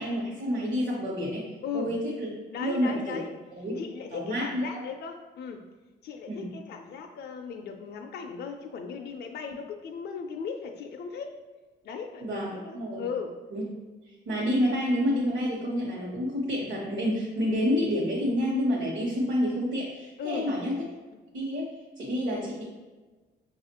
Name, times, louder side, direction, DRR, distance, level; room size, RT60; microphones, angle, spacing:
voice 1, 0.0-1.5 1.7-2.3 2.6-3.2 3.5-3.7 4.1-4.6 6.3-6.5 12.2-13.0 13.5-13.6 14.3-20.8 21.3-22.6, equal, 65° right, -5 dB, 1.0 m, -28 dB
voice 2, 1.6-2.0 2.5-3.3 3.7-5.7 6.0-11.4 11.8-13.4 20.2-21.2, left 6 dB, 55° left, 3 dB, 0.4 m, -37 dB
5.9 x 2.4 x 2.8 m, 1.3 s
cardioid pair, 90°, 20 cm